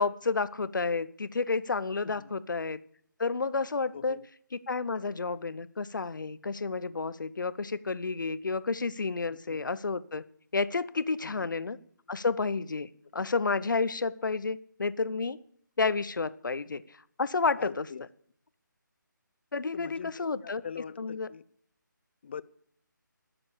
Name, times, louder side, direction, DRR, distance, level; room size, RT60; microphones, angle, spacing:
voice 1, 0.0-2.8 3.2-4.2 4.7-10.2 10.5-11.8 12.1-15.4 15.8-16.8 17.2-17.8 19.5-20.6 21.0-21.3, left 4 dB, 70° left, 0.8 m, -30 dB
voice 2, 3.9-4.3 9.3-9.6 11.2-11.5 17.6-18.1 19.7-21.4 22.2-22.4, left 6 dB, 30° left, 0.4 m, -43 dB
16.5 x 7.0 x 6.9 m
figure-of-eight pair, 160°, 11 cm